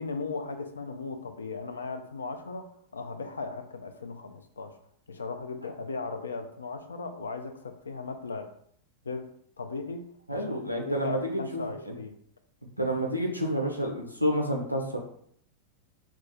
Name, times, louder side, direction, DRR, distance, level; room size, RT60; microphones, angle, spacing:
voice 1, 0.0-4.7 5.1-8.5 9.0-9.3 9.6-10.0 10.3-12.2, left 4 dB, 70° left, 7 dB, 0.3 m, -37 dB
voice 2, 10.3-11.6 12.8-15.0, equal, 90° right, 1 dB, 0.5 m, -29 dB
2.3 x 2.3 x 3.9 m, 0.66 s
figure-of-eight pair, 90°, 0 cm